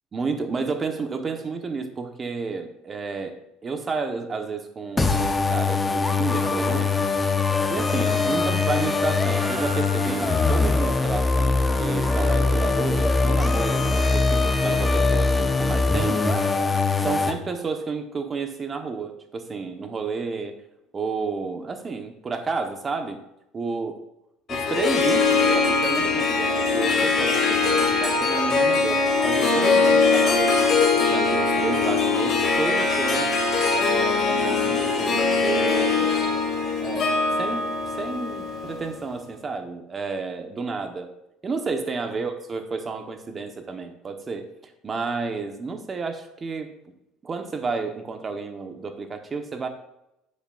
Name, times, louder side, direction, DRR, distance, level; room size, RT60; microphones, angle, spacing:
voice 1, 0.1-7.1 7.7-16.3 16.7-20.5 20.9-23.2 23.5-24.0 24.5-33.4 33.7-36.2 36.8-41.1 41.4-46.7 47.2-49.7, right 4 dB, 30° right, 6 dB, 1.3 m, -31 dB
sound 1, 5.0-17.3, left 3 dB, 15° left, 1.1 m, -22 dB
Harp, 24.5-39.0, left 4 dB, 40° left, 2.3 m, -22 dB
11.5 x 8.2 x 2.6 m, 0.87 s
supercardioid pair, 95°, 0 cm